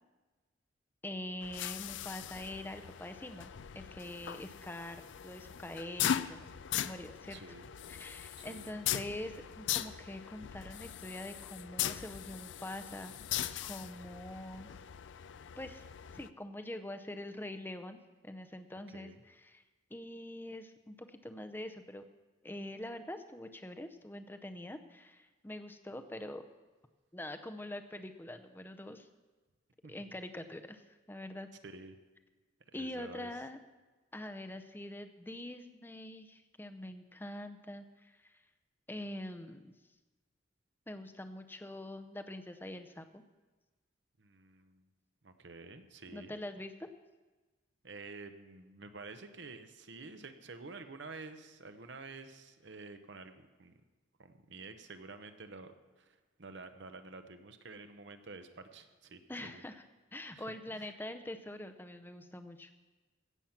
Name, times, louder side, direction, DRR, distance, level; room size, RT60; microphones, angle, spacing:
voice 1, 1.0-3.5 3.7-6.4 6.8-7.4 7.9-14.7 15.6-15.8 16.1-18.0 18.2-19.6 19.9-22.0 22.4-26.4 27.1-29.1 29.9-30.8 31.1-31.5 32.7-33.6 34.1-38.4 38.9-39.8 40.9-43.2 46.1-46.9 59.3-59.8 60.1-62.7, left 1 dB, 10° left, 8 dB, 0.6 m, -44 dB
sound 1, 1.4-16.3, left 10 dB, 70° left, 0.4 m, -40 dB
voice 2, 4.2-4.5 7.3-7.7 8.3-8.7 18.9-19.2 29.8-29.9 31.6-32.0 32.8-33.3 44.2-44.8 45.2-46.4 47.8-53.7 54.2-59.6 60.3-60.5 60.7-60.9, right 3 dB, 65° right, 8 dB, 0.9 m, -50 dB
16.5 x 7.3 x 5.9 m, 1.2 s
head